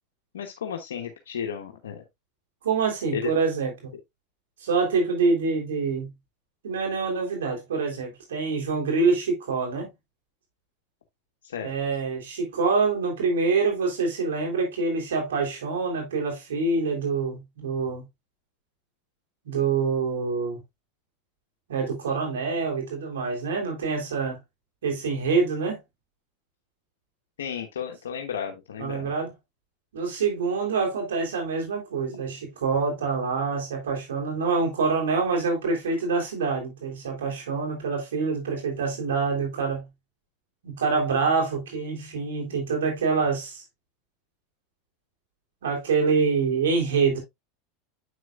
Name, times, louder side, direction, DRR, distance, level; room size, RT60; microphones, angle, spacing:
voice 1, 0.3-2.0 3.1-3.3 11.4-11.7 27.4-29.1, left 8 dB, 90° left, 1.1 m, -33 dB
voice 2, 2.6-3.9 4.6-6.1 6.6-9.9 11.6-18.0 19.4-20.6 21.7-24.4 24.8-25.8 28.8-29.3 29.9-39.9 40.6-43.6 45.6-47.2, right 4 dB, 85° right, 3.4 m, -26 dB
8.0 x 6.2 x 2.4 m
hypercardioid pair, 105°, 0 cm